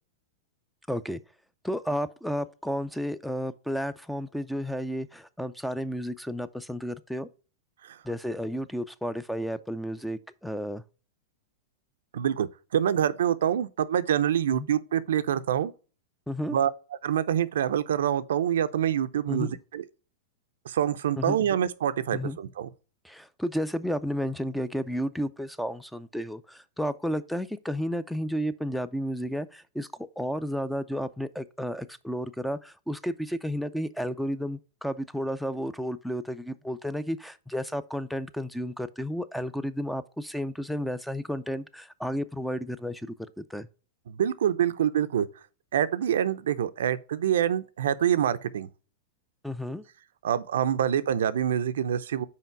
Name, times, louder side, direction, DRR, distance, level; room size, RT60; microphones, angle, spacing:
voice 1, 0.9-1.2 1.6-7.3 8.0-10.8 14.5-14.7 16.3-16.6 19.3-19.6 21.2-21.4 22.1-22.4 23.0-43.7 49.4-49.8, equal, ahead, 0.4 m, -32 dB
voice 2, 12.1-15.7 16.5-16.7 17.0-19.8 20.7-22.7 44.1-45.3 45.7-48.7 50.2-52.2, right 9 dB, 80° right, 0.5 m, -26 dB
5.7 x 4.6 x 4.5 m
hypercardioid pair, 120°, 0 cm